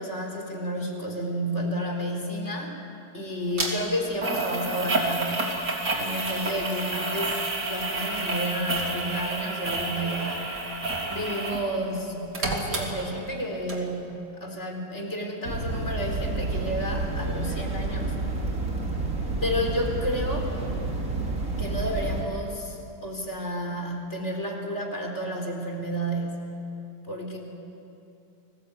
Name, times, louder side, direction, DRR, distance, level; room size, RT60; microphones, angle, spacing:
voice 1, 0.0-2.8 3.1-5.5 6.0-7.4 7.7-10.5 11.1-14.1 14.4-18.1 19.4-20.5 21.6-26.4 27.1-27.4, equal, 40° left, 1 dB, 4.1 m, -31 dB
sound 1, 3.6-3.7 4.2-11.7 12.0-13.4 13.7-13.8, right 2 dB, 70° right, 3.8 m, -29 dB
sound 2, 15.4-22.2, right 2 dB, 50° right, 3.5 m, -29 dB
29.5 x 20.0 x 8.5 m, 2.8 s
omnidirectional pair, 1.8 m